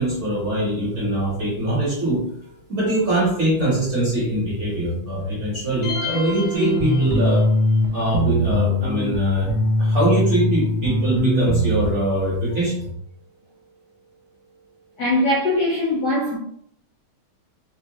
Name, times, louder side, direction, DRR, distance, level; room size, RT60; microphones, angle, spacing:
voice 1, 0.0-2.3 2.7-7.4 7.9-9.5 9.8-12.9, right 1 dB, 45° right, 1.1 m, -22 dB
sound 1, 5.8-7.6, left 3 dB, 55° left, 1.4 m, -30 dB
sound 2, 6.5-7.9 8.1-11.9, left 1 dB, 75° right, 1.3 m, -21 dB
voice 2, 15.0-16.4, left 1 dB, 70° left, 1.0 m, -21 dB
4.5 x 2.1 x 2.9 m
omnidirectional pair, 2.3 m